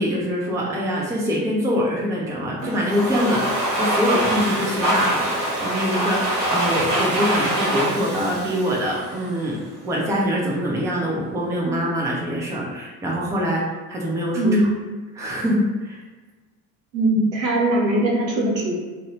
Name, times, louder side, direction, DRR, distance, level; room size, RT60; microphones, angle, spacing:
voice 1, 0.0-3.4 3.8-13.6 13.9-14.6 15.1-16.0, equal, 5° right, -3 dB, 0.4 m, -24 dB
Domestic sounds home sounds, 2.6-9.5, right 1 dB, 60° right, 1.0 m, -24 dB
voice 2, 14.4-14.7 16.9-18.8, right 1 dB, 85° right, -3 dB, 0.6 m, -20 dB
2.6 x 2.1 x 2.7 m, 1.3 s
figure-of-eight pair, 55°, 50 cm